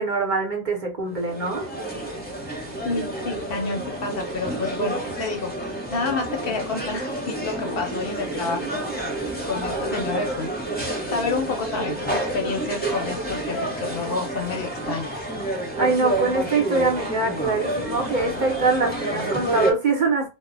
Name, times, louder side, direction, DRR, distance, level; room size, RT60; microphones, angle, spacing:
voice 1, 0.0-1.7 15.8-20.3, right 3 dB, 45° right, 0.8 m, -23 dB
sound 1, 1.1-19.7, right 1 dB, 10° left, 0.6 m, -29 dB
voice 2, 2.8-5.5 5.9-9.0 9.5-10.5 11.1-15.2, left 4 dB, 60° left, 0.7 m, -29 dB
2.1 x 2.1 x 3.8 m
omnidirectional pair, 1.2 m